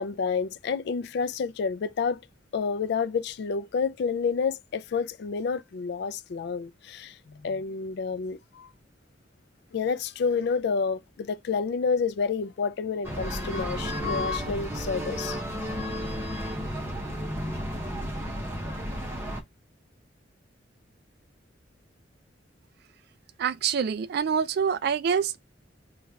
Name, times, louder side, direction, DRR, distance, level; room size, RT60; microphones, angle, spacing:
voice 1, 0.0-2.2 2.5-8.7 9.7-15.4, left 5 dB, 60° left, 0.3 m, -29 dB
sound 1, 13.0-19.4, equal, 15° right, 0.8 m, -32 dB
voice 2, 23.4-25.4, right 7 dB, 55° right, 0.3 m, -26 dB
3.2 x 2.3 x 3.5 m
head